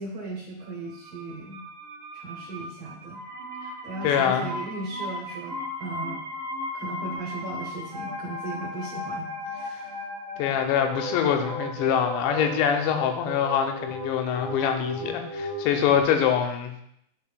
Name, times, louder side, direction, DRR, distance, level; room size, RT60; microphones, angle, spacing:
voice 1, 0.0-1.6 2.1-3.2 3.8-6.2 6.7-9.9, right 2 dB, 75° right, -2 dB, 2.1 m, -37 dB
sound 1, 0.9-16.0, left 1 dB, 25° right, 0.9 m, -36 dB
voice 2, 4.0-4.5 10.4-16.7, left 8 dB, 85° left, 5 dB, 2.8 m, -24 dB
11.5 x 4.1 x 2.2 m, 0.73 s
omnidirectional pair, 5.2 m